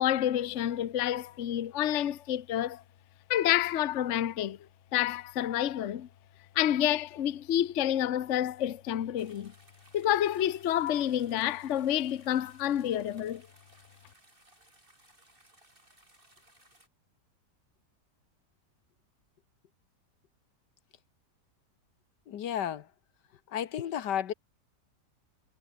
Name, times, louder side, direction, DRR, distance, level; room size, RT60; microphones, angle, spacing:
voice 1, 0.0-2.8 3.3-4.6 4.9-6.1 6.5-9.5 9.9-13.5, left 11 dB, 55° left, 1.0 m, -29 dB
sound 1, 9.2-16.9, right 1 dB, 30° right, 7.9 m, -62 dB
voice 2, 22.3-22.9 23.5-24.3, left 10 dB, 75° left, 1.7 m, -32 dB
omnidirectional pair, 1.8 m